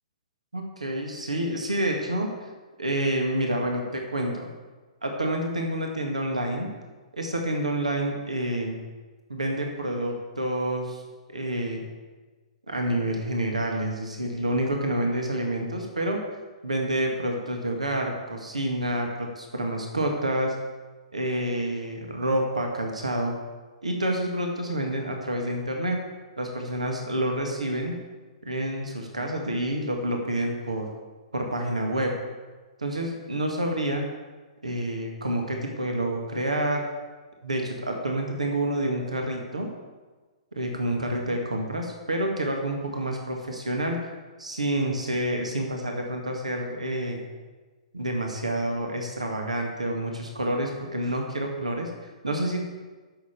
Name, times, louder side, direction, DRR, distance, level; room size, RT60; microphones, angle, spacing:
voice 1, 0.5-2.5 2.8-4.5 5.0-6.7 7.2-8.8 9.3-11.0 11.3-11.8 12.7-16.2 16.6-20.6 21.1-23.4 23.8-26.0 26.4-28.0 28.4-30.9 31.3-32.2 32.8-34.1 34.6-36.9 37.4-39.7 40.5-44.1 44.4-47.2 47.9-52.6, right 1 dB, 80° right, 2 dB, 2.0 m, -28 dB
10.5 x 7.2 x 8.2 m, 1.3 s
figure-of-eight pair, 115°, 4 cm